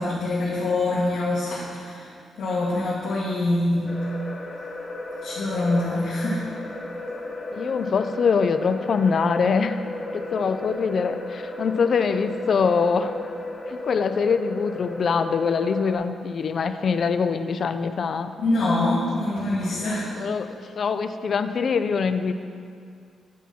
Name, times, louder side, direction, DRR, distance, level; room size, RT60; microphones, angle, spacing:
voice 1, 0.0-2.1 2.4-3.9 5.2-6.4 18.4-20.1, left 2 dB, 80° left, -10 dB, 2.0 m, -24 dB
sound 1, 3.9-16.0, left 2 dB, 25° left, 1.0 m, -34 dB
voice 2, 7.5-9.8 10.1-13.2 13.7-18.3 20.2-22.3, left 5 dB, 40° left, 10 dB, 0.4 m, -24 dB
10.5 x 6.2 x 4.3 m, 2.3 s
wide cardioid pair, 175°, 0 cm